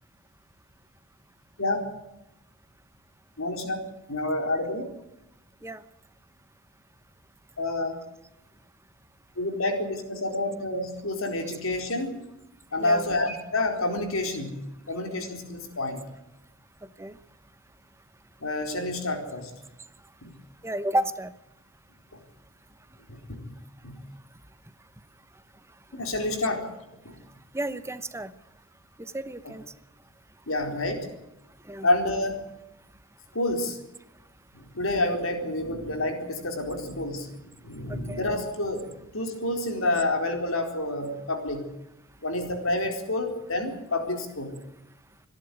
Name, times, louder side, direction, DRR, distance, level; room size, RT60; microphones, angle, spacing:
voice 1, 3.4-4.9 7.6-8.0 9.4-12.1 12.7-16.0 18.4-19.5 20.2-20.3 23.1-23.5 23.8-24.0 25.9-26.7 27.0-27.1 30.5-31.1 31.8-32.4 33.3-33.8 34.7-37.3 37.6-41.7 42.2-44.5, left 2 dB, 85° left, 4 dB, 4.2 m, -28 dB
voice 2, 12.8-13.1 16.8-17.2 20.6-21.3 27.5-28.3 29.0-29.6 31.7-31.9 37.9-38.2, right 1 dB, 15° right, 13 dB, 0.9 m, -32 dB
25.5 x 11.0 x 9.4 m, 0.94 s
head